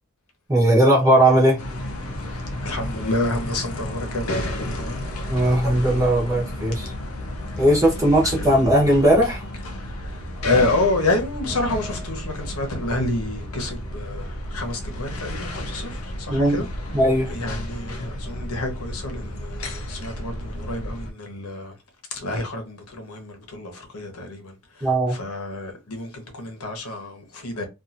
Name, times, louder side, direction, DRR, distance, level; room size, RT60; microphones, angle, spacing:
voice 1, 0.5-1.6 5.3-6.9 7.6-9.4 16.3-16.6 16.9-17.3 24.8-25.2, right 1 dB, 15° right, 1.0 m, -18 dB
sound 1, 1.6-21.1, left 1 dB, 70° left, 0.6 m, -32 dB
voice 2, 2.2-5.1 7.7-7.8 8.1-8.4 9.8-16.6 17.3-21.7 22.1-27.7, left 2 dB, 90° left, 1.0 m, -29 dB
2.7 x 2.6 x 2.5 m
head